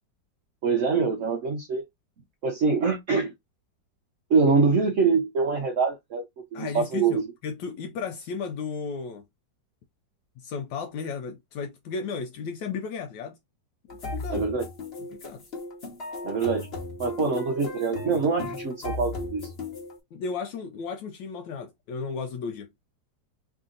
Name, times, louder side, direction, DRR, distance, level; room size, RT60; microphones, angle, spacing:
voice 1, 0.6-1.8 2.4-3.3 4.3-6.2 6.5-7.2 14.3-14.6 16.2-16.7 17.0-19.5, right 4 dB, 60° right, 0.8 m, -24 dB
voice 2, 6.5-9.3 10.4-13.4 14.0-14.5 15.1-15.4 20.1-22.7, left 5 dB, 80° left, 1.2 m, -34 dB
sound 1, 13.9-20.0, left 2 dB, 35° left, 1.3 m, -36 dB
3.4 x 2.7 x 3.7 m
omnidirectional pair, 2.0 m